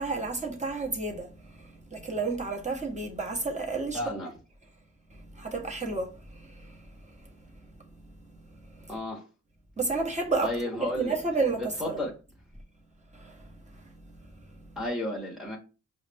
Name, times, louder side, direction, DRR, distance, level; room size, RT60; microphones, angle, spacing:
voice 1, 0.0-4.0 5.1-7.4 8.8-9.0 9.8-12.1 13.1-13.9 14.5-14.7, right 3 dB, 20° right, 1.2 m, -32 dB
voice 2, 3.9-4.3 8.9-9.2 10.4-11.2 11.8-12.1 14.8-15.6, left 1 dB, ahead, 1.1 m, -32 dB
4.7 x 2.2 x 3.4 m
cardioid pair, 55°, 32 cm